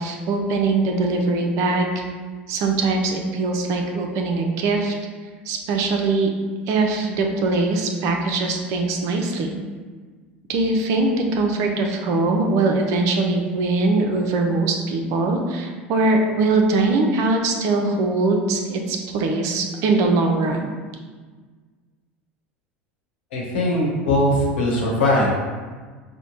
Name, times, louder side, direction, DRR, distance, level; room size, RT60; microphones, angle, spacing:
voice 1, 0.0-2.0 2.5-4.9 5.5-6.3 6.7-9.6 10.5-20.7, right 3 dB, 55° right, 3 dB, 0.6 m, -21 dB
voice 2, 23.3-25.3, left 1 dB, 75° left, -3 dB, 1.1 m, -20 dB
5.1 x 2.1 x 3.0 m, 1.5 s
hypercardioid pair, 80°, 6 cm